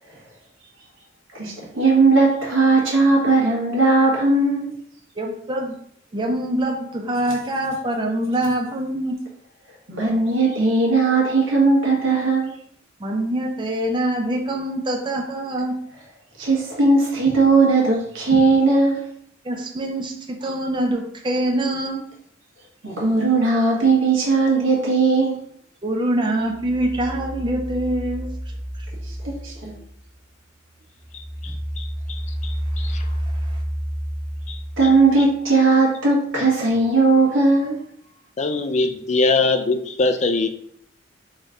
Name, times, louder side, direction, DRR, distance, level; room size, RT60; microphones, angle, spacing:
voice 1, 1.3-4.7 9.9-12.5 16.4-19.0 22.8-25.4 29.0-29.8 34.8-37.8, right 3 dB, 80° right, -3 dB, 1.5 m, -18 dB
voice 2, 5.2-5.7 6.1-9.2 13.0-15.8 19.4-22.0 25.8-28.3 33.4-33.6, right 1 dB, 25° right, 1 dB, 0.5 m, -24 dB
sound 1, 26.4-30.3 30.7-35.2, equal, 5° right, 1.1 m, -30 dB
voice 3, 31.4-33.0 34.5-34.6 38.4-40.5, left 3 dB, 35° left, 8 dB, 0.4 m, -23 dB
4.0 x 3.1 x 3.8 m, 0.67 s
head